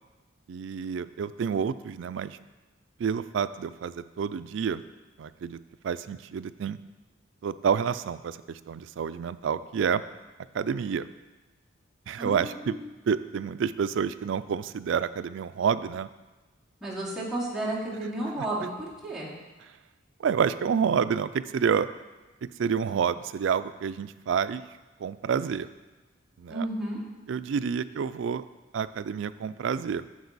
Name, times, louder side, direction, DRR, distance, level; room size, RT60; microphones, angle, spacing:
voice 1, 0.5-2.4 3.0-4.8 5.2-5.6 5.8-6.8 7.4-10.0 10.5-11.1 12.1-12.8 13.1-16.1 18.4-18.5 20.2-21.9 22.4-24.6 25.0-25.7 26.4-26.7 27.3-28.4 28.7-30.0, right 7 dB, 70° right, 14 dB, 0.3 m, -28 dB
voice 2, 12.2-12.8 16.8-19.3 26.5-27.0, right 1 dB, ahead, -9 dB, 2.3 m, -32 dB
9.5 x 6.8 x 4.0 m, 1.2 s
head